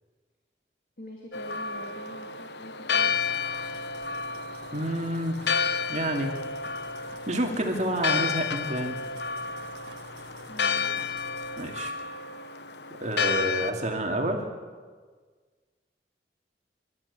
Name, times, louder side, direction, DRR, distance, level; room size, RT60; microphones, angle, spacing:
voice 1, 1.0-3.2 10.5-11.1, left 1 dB, 55° left, 0 dB, 2.5 m, -45 dB
Church bell, 1.3-13.7, left 5 dB, 70° left, 0.9 m, -31 dB
sound 1, 2.9-11.8, right 2 dB, 70° right, 1.8 m, -49 dB
voice 2, 4.7-5.4 5.9-6.3 7.3-9.0 11.6-11.9 13.0-14.4, right 1 dB, 40° right, 2 dB, 2.7 m, -28 dB
25.0 x 14.0 x 8.3 m, 1.5 s
head